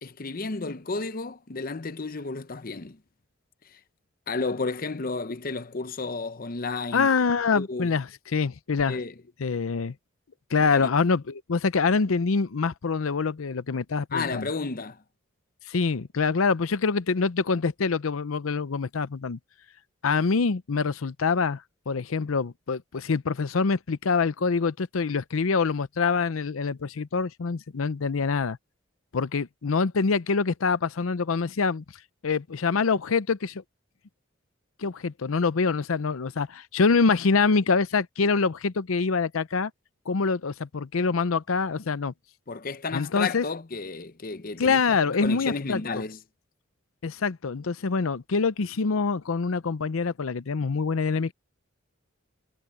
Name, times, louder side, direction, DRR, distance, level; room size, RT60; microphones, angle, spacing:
voice 1, 0.0-3.0 3.7-3.8 4.3-7.1 7.5-7.9 8.9-9.1 10.7-10.9 14.1-15.0 42.5-46.2, left 3 dB, 45° left, 0.7 m, -32 dB
voice 2, 6.9-9.0 9.4-9.9 10.5-14.5 15.7-19.4 20.0-28.6 29.1-31.8 32.2-33.6 34.8-39.7 40.1-42.1 42.9-43.4 44.6-45.8 47.0-51.3, left 4 dB, 85° left, 0.6 m, -25 dB
head